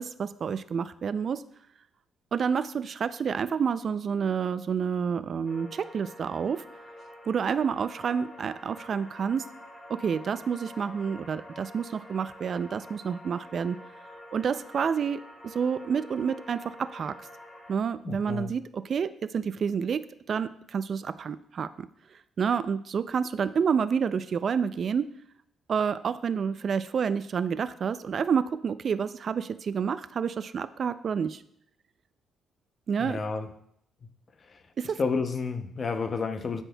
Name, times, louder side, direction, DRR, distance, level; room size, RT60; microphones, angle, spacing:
voice 1, 0.0-1.4 2.3-6.6 7.3-9.4 9.9-13.8 14.3-17.1 17.7-20.0 20.3-25.1 25.7-31.4 32.9-33.2 34.8-35.0, right 6 dB, 50° right, 13 dB, 0.3 m, -29 dB
sound 1, 5.4-17.7, left 1 dB, 15° left, 2.7 m, -47 dB
voice 2, 18.0-18.5 33.0-33.5 34.5-34.6 35.0-36.6, left 4 dB, 40° left, 9 dB, 0.6 m, -30 dB
12.5 x 4.4 x 2.2 m, 0.70 s
cardioid pair, 90°, 0 cm